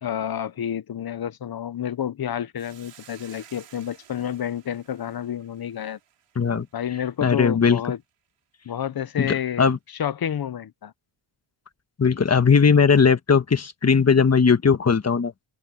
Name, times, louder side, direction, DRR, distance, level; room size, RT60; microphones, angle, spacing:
voice 1, 0.0-6.0 6.7-8.0 8.6-9.6 10.0-10.9, left 9 dB, 45° left, 0.9 m, -29 dB
Hiss, 2.6-7.1, right 10 dB, 90° right, 5.9 m, -53 dB
voice 2, 6.3-6.7 7.2-7.8 9.2-9.8 12.0-15.3, left 5 dB, 30° left, 1.4 m, -18 dB
open air
cardioid pair, 85°, 50 cm